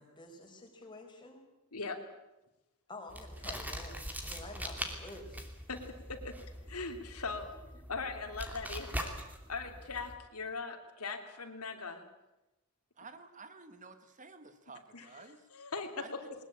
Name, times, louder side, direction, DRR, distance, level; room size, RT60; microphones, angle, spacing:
voice 1, 0.0-1.5 2.9-5.4 7.5-7.6, left 2 dB, 20° left, 2 dB, 4.9 m, -49 dB
sound 1, 3.1-10.1, equal, 5° right, 2.8 m, -42 dB
voice 2, 6.7-7.5 7.9-9.1 9.5-12.0 14.9-15.1 15.5-16.2, left 4 dB, 85° left, 5 dB, 3.2 m, -40 dB
voice 3, 13.0-15.5 16.0-16.3, right 4 dB, 35° right, 10 dB, 1.6 m, -52 dB
21.5 x 20.0 x 8.8 m, 0.97 s
head